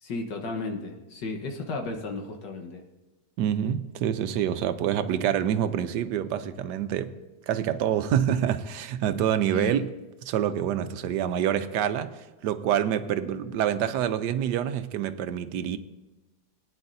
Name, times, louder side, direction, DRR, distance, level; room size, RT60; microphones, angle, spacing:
voice 1, 0.0-2.8 9.5-9.8, left 3 dB, 75° left, 1.8 m, -34 dB
voice 2, 3.4-7.1 7.5-9.9 10.2-15.8, right 9 dB, 75° right, 1.2 m, -27 dB
20.0 x 9.7 x 2.6 m
omnidirectional pair, 1.9 m